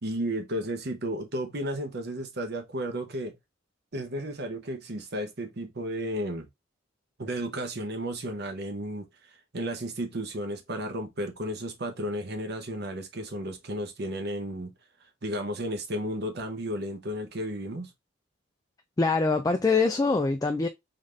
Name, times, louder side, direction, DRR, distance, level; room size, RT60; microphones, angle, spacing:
voice 1, 0.0-3.4 3.9-6.5 7.2-14.7 15.2-17.9, right 1 dB, 55° right, 0.8 m, -33 dB
voice 2, 19.0-20.7, left 3 dB, 20° left, 0.3 m, -24 dB
3.9 x 2.5 x 3.2 m
head